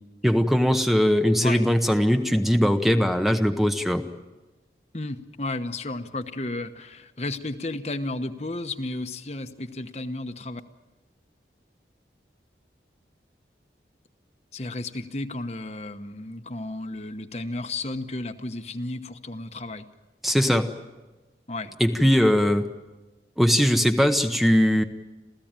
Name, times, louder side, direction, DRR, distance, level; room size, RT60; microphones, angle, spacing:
voice 1, 0.2-4.0 20.2-20.7 21.8-22.7 23.4-24.8, equal, ahead, 6 dB, 0.9 m, -20 dB
voice 2, 4.9-10.6 14.5-19.9 21.5-21.7 22.0-22.5, left 2 dB, 40° left, 8 dB, 1.0 m, -33 dB
27.5 x 15.5 x 8.9 m, 1.2 s
head